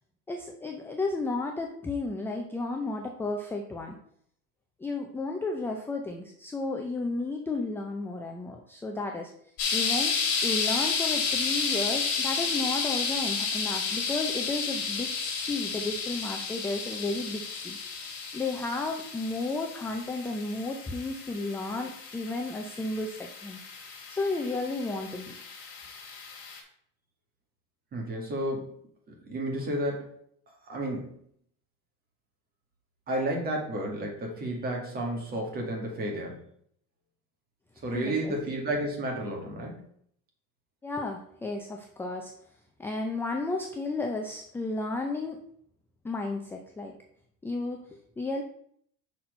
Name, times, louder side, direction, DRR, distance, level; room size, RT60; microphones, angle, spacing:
voice 1, 0.3-4.0 4.8-9.3 9.7-10.1 10.4-17.8 18.3-23.6 24.1-25.4 37.9-38.3 40.8-42.3 42.8-45.4 46.0-46.9 47.4-48.4, left 3 dB, 5° left, 2 dB, 0.4 m, -33 dB
sound 1, 9.6-26.6, left 5 dB, 55° left, 2.3 m, -32 dB
voice 2, 27.9-28.8 29.1-30.1 30.6-31.2 33.1-36.4 37.8-39.9, right 1 dB, 30° right, 0 dB, 1.9 m, -32 dB
5.9 x 4.3 x 5.2 m, 0.66 s
cardioid pair, 155°, 32 cm